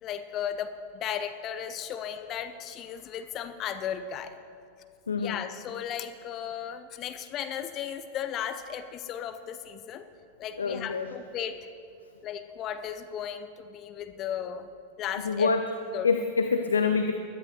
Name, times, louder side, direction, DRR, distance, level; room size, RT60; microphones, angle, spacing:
voice 1, 0.0-4.4 5.2-10.1 10.4-11.6 12.2-14.7 15.0-15.5 15.9-16.1, left 9 dB, 35° left, 10 dB, 0.6 m, -35 dB
voice 2, 5.1-5.4 10.6-11.1 15.2-15.7 16.0-17.1, left 5 dB, 70° left, 6 dB, 0.6 m, -26 dB
21.0 x 13.0 x 3.1 m, 2.4 s
figure-of-eight pair, 90°, 0 cm